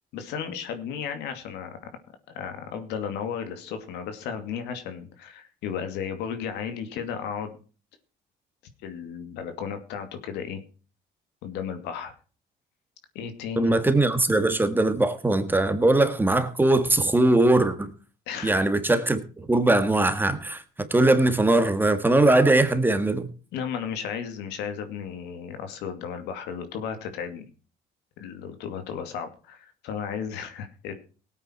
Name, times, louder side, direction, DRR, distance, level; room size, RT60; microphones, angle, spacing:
voice 1, 0.1-1.9 2.3-7.6 8.8-10.6 11.4-12.1 13.1-13.8 18.3-18.7 23.5-27.5 28.2-30.9, left 7 dB, 90° left, 2.4 m, -34 dB
voice 2, 13.6-17.9 18.4-20.6 20.9-23.3, right 2 dB, 10° right, 1.8 m, -21 dB
18.0 x 8.9 x 4.5 m
cardioid pair, 110°, 17 cm